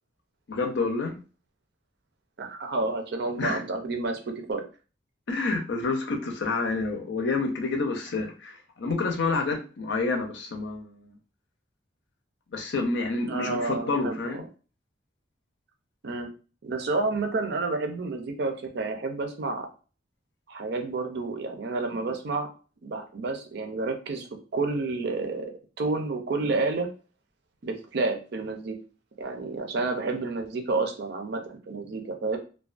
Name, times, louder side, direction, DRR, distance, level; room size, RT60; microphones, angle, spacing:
voice 1, 0.5-1.2 3.4-3.6 5.3-11.1 12.5-14.4, left 3 dB, 65° left, 3 dB, 0.5 m, -28 dB
voice 2, 2.4-4.6 13.3-14.5 16.0-16.3 16.6-19.7 20.5-22.5 22.8-24.3 24.5-25.5 25.8-26.9 27.6-28.8 29.2-32.4, right 3 dB, 60° right, 4 dB, 0.5 m, -30 dB
2.3 x 2.2 x 2.4 m, 0.36 s
head